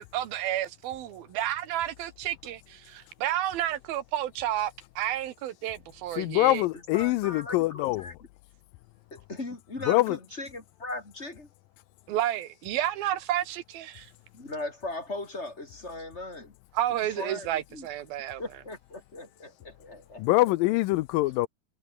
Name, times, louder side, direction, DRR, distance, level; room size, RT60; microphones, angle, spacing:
voice 1, 0.0-6.6 12.1-14.1 16.7-18.4, right 12 dB, 90° right, 3.3 m, -31 dB
voice 2, 6.2-8.1 9.9-10.2 20.2-21.5, left 19 dB, 80° left, 2.2 m, -24 dB
voice 3, 6.9-8.1 9.1-11.5 14.3-16.5 17.1-17.9 18.4-20.2, left 2 dB, 20° left, 2.9 m, -38 dB
omnidirectional pair, 4.1 m